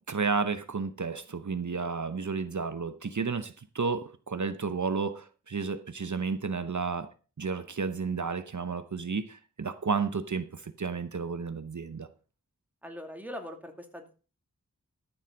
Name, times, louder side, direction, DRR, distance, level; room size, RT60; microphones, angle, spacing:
voice 1, 0.0-7.1 7.4-12.1, right 5 dB, 65° right, 11 dB, 0.9 m, -32 dB
voice 2, 12.8-14.1, equal, 5° right, 4 dB, 2.3 m, -41 dB
13.0 x 7.3 x 5.2 m, 0.35 s
wide cardioid pair, 65°, 32 cm